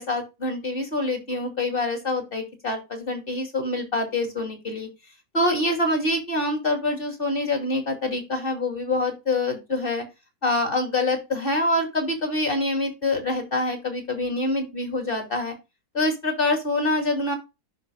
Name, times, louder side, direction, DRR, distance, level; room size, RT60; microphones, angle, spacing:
voice 1, 0.0-4.9 5.3-10.0 10.4-15.5 15.9-17.3, left 2 dB, 30° left, 3 dB, 2.9 m, -25 dB
9.8 x 6.3 x 2.2 m, 0.24 s
omnidirectional pair, 1.8 m